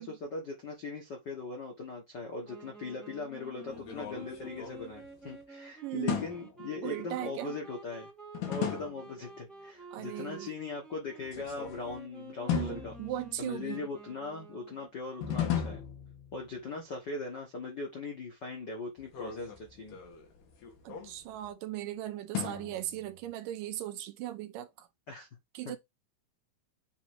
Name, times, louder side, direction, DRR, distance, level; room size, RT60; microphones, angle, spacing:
voice 1, 0.0-8.1 8.5-12.9 13.4-15.8 16.3-20.0 25.1-25.3 25.6-25.7, left 3 dB, 90° left, 0.9 m, -40 dB
Wind instrument woodwind instrument, 2.4-14.9, right 3 dB, ahead, 1.2 m, -50 dB
sound 1, 3.7-5.4 6.1-6.7 8.3-9.2 11.2-12.0 12.5-13.6 15.2-16.6 19.0-21.5 22.3-23.3, left 9 dB, 65° left, 3.1 m, -37 dB
voice 2, 5.8-6.3 6.8-7.6 9.9-10.5 12.5-13.8 20.8-24.9 25.5-25.8, right 14 dB, 80° right, 2.2 m, -38 dB
8.2 x 3.1 x 4.8 m
omnidirectional pair, 4.3 m